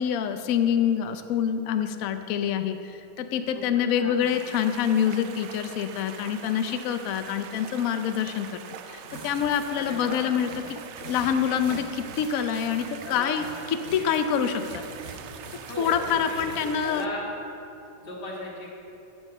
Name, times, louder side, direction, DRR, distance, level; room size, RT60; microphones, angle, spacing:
voice 1, 0.0-8.5 8.8-13.5 13.7-14.8 15.8-17.1, left 8 dB, 65° left, 8 dB, 1.0 m, -26 dB
voice 2, 3.5-4.2 9.7-10.2 13.0-13.5 14.0-14.1 15.7-17.3 18.0-18.7, left 1 dB, 35° left, -4 dB, 2.0 m, -37 dB
sound 1, 4.2-17.1, right 8 dB, 85° right, 0.6 m, -43 dB
sound 2, 9.0-14.2 14.4-16.7, right 2 dB, 60° right, 2.5 m, -45 dB
15.5 x 6.3 x 5.4 m, 2.9 s
omnidirectional pair, 1.7 m